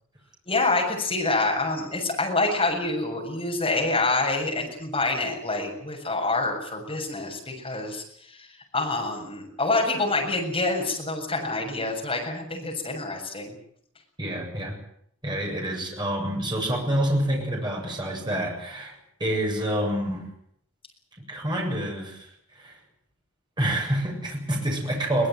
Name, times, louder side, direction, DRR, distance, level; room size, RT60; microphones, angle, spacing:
voice 1, 0.5-8.0 8.7-13.5, left 2 dB, 25° left, 1 dB, 7.3 m, -26 dB
voice 2, 14.2-14.8 15.2-20.3 21.3-22.3 22.6-22.8 23.6-25.3, right 1 dB, 20° right, 0 dB, 7.5 m, -27 dB
22.5 x 19.5 x 9.4 m, 0.68 s
head